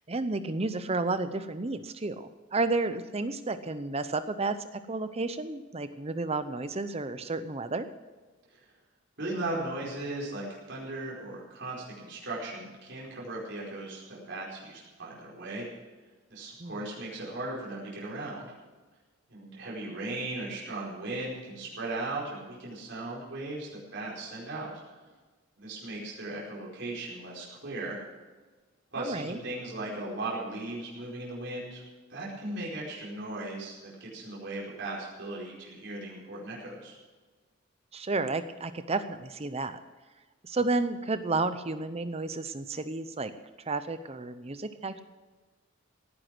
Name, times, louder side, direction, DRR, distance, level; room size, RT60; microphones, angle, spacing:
voice 1, 0.1-7.9 16.6-16.7 29.0-29.4 37.9-39.8 40.4-43.3 43.7-45.0, right 3 dB, 30° right, 11 dB, 0.7 m, -31 dB
voice 2, 9.2-15.7 16.3-18.5 19.3-24.7 25.6-28.0 28.9-31.8 32.1-37.0, right 2 dB, 60° right, -5 dB, 4.8 m, -37 dB
17.5 x 10.0 x 6.1 m, 1.3 s
head